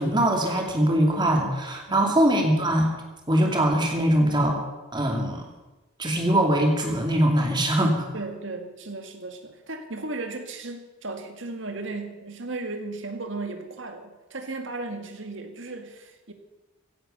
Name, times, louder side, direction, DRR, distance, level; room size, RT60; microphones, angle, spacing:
voice 1, 0.0-2.9 3.3-4.6 4.9-5.4 6.0-8.1, right 1 dB, 20° right, 2 dB, 2.5 m, -22 dB
voice 2, 8.1-16.3, right 2 dB, 65° right, 6 dB, 1.9 m, -35 dB
16.0 x 11.5 x 6.8 m, 1.1 s
head